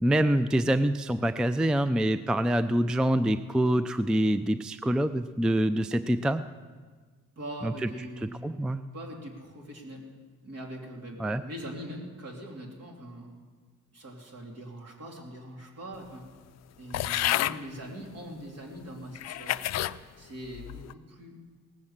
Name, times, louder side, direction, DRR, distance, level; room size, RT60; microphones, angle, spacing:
voice 1, 0.0-6.4 7.6-7.7 8.4-8.8 11.2-11.4, right 1 dB, 5° right, 12 dB, 0.3 m, -25 dB
voice 2, 7.4-10.0 10.4-13.4 13.9-16.3 16.8-19.8 20.2-21.3, right 1 dB, 55° right, 0 dB, 3.1 m, -42 dB
sound 1, 16.9-17.6 18.4-18.5 19.1-20.0 20.5-20.9, left 14 dB, 60° left, 0.4 m, -29 dB
18.0 x 7.6 x 7.2 m, 1.5 s
cardioid pair, 90°, 30 cm